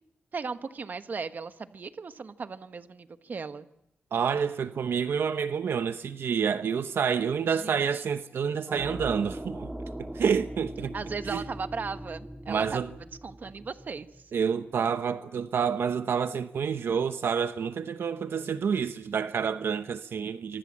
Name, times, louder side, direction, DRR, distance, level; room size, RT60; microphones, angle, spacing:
voice 1, 0.3-3.7 7.4-8.0 10.9-12.8 13.2-14.1, right 5 dB, 50° right, 1.3 m, -37 dB
voice 2, 4.1-9.7 10.0-10.9 11.3-11.4 12.5-12.9 14.3-20.6, right 6 dB, 80° right, 0.9 m, -28 dB
sound 1, 8.7-14.5, right 1 dB, 10° right, 1.6 m, -40 dB
25.5 x 24.0 x 7.5 m
wide cardioid pair, 130°, 4 cm